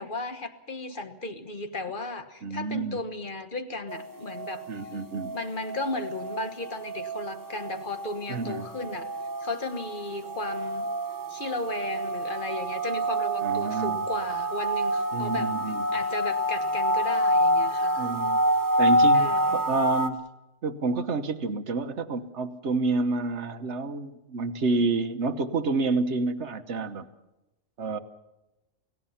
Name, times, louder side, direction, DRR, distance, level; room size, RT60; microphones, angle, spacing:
voice 1, 0.0-4.9 5.3-9.1 9.4-10.9 11.3-15.5 15.9-18.1 19.1-19.7, left 2 dB, 40° left, 7 dB, 1.6 m, -35 dB
voice 2, 2.4-3.0 4.7-5.3 8.3-8.7 13.4-14.1 15.1-15.9 18.0-18.4 18.8-20.2 20.6-27.1 27.8-28.0, right 3 dB, 60° right, 8 dB, 1.4 m, -29 dB
sound 1, 3.9-20.1, right 1 dB, 15° right, 1.0 m, -27 dB
29.0 x 16.5 x 5.8 m, 0.97 s
omnidirectional pair, 1.3 m